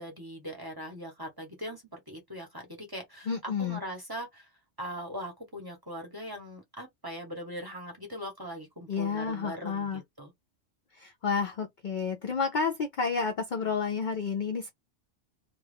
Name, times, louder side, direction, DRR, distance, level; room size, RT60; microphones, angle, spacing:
voice 1, 0.0-4.5 4.8-10.3, equal, 20° right, 0.7 m, -40 dB
voice 2, 3.3-3.8 8.9-10.0 10.9-14.7, left 5 dB, 60° left, 0.5 m, -30 dB
2.3 x 2.2 x 3.4 m
omnidirectional pair, 1.3 m